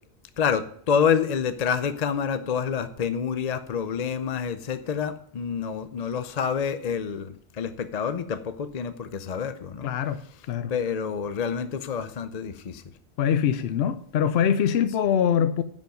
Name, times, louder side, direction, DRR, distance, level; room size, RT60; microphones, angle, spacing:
voice 1, 0.4-9.9 10.7-12.8, left 7 dB, 45° left, 0.6 m, -28 dB
voice 2, 9.8-10.2 10.5-10.7 13.2-15.6, left 8 dB, 75° left, 0.8 m, -23 dB
10.5 x 5.3 x 6.4 m
omnidirectional pair, 1.1 m